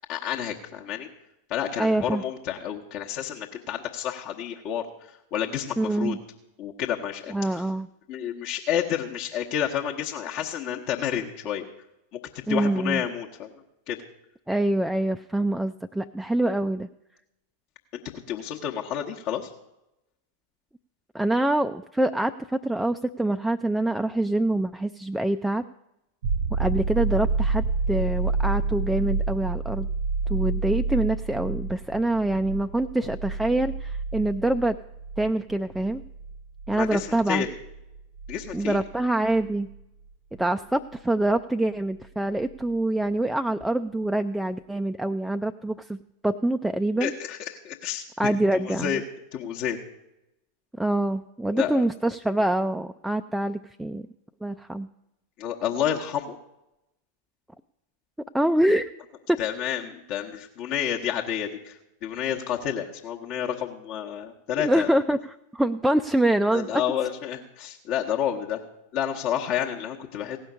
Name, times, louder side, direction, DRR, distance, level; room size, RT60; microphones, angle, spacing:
voice 1, 0.1-1.1 1.5-4.8 5.3-6.2 6.6-7.6 8.1-11.7 12.3-13.5 13.9-14.0 17.9-19.5 36.7-37.5 38.3-38.8 47.0-49.0 49.3-49.8 51.5-51.8 55.4-56.4 59.4-64.9 66.5-68.6 68.9-70.4, left 9 dB, 40° left, -1 dB, 1.0 m, -30 dB
voice 2, 1.8-2.2 5.8-6.2 7.3-7.9 12.5-13.0 14.5-16.9 21.1-25.6 26.5-29.9 30.3-34.8 35.2-36.0 36.7-37.5 38.5-39.7 40.4-46.0 46.2-47.1 48.2-49.0 50.8-54.1 54.4-54.9 58.3-58.9 59.3-59.4 63.5-63.6 64.6-65.2 65.5-66.8, right 1 dB, 5° right, 8 dB, 0.3 m, -25 dB
sound 1, 26.2-39.7 42.5-42.6, right 4 dB, 55° right, 0.6 m, -29 dB
16.5 x 5.6 x 8.3 m, 0.90 s
figure-of-eight pair, 90°, 0 cm